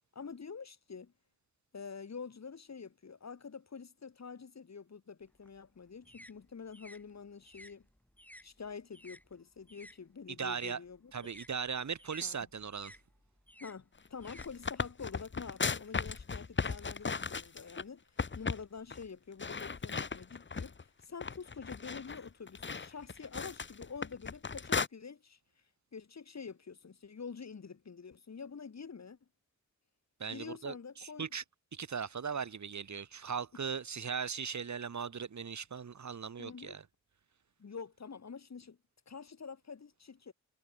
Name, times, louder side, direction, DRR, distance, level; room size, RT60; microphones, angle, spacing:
voice 1, 0.1-1.1 1.7-7.9 8.4-11.3 12.2-12.4 13.6-18.0 18.3-25.4 25.9-29.2 30.3-31.3 33.5-33.6 36.4-36.8 37.6-38.8 39.1-40.3, left 5 dB, 60° left, 7.6 m, -47 dB
sound 1, 5.2-10.0 10.3-15.1, equal, 5° left, 5.5 m, -57 dB
voice 2, 10.3-10.8 11.1-13.0 30.2-31.4 31.7-36.8, right 6 dB, 70° right, 4.2 m, -38 dB
sound 2, 14.1-17.8 18.2-18.6 18.9-19.0 19.4-20.8 21.2-24.9, left 5 dB, 40° left, 1.5 m, -36 dB
wide cardioid pair, 90°, 30 cm